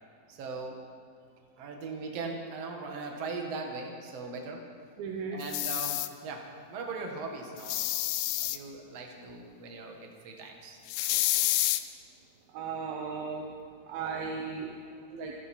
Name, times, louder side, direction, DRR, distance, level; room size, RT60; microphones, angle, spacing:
voice 1, 0.3-0.8 1.6-4.7 5.3-7.8 8.4-10.8 14.8-15.2, right 3 dB, 50° right, 2 dB, 2.5 m, -39 dB
voice 2, 5.0-5.4 12.5-13.5 13.9-14.8 15.1-15.3, right 5 dB, 90° right, 1 dB, 2.8 m, -36 dB
sound 1, 5.4-6.1 7.6-8.6 10.9-11.8, left 15 dB, 80° left, 1.9 m, -29 dB
26.5 x 10.5 x 4.4 m, 2.4 s
omnidirectional pair, 4.1 m